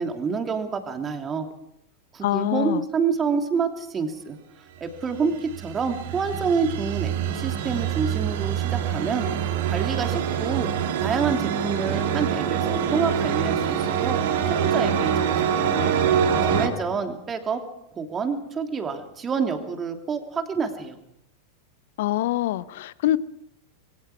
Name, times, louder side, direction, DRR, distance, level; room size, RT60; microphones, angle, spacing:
voice 1, 0.0-1.5 2.1-4.4 4.8-9.3 9.7-10.7 11.0-14.2 14.5-15.8 16.4-17.6 17.9-21.0, right 5 dB, 20° right, 5 dB, 3.0 m, -28 dB
voice 2, 2.2-2.8 22.0-23.2, left 14 dB, 55° left, 18 dB, 0.9 m, -24 dB
sound 1, 5.1-16.7, right 8 dB, 55° right, 2.5 m, -25 dB
26.0 x 23.0 x 4.9 m, 0.77 s
figure-of-eight pair, 90°, 0 cm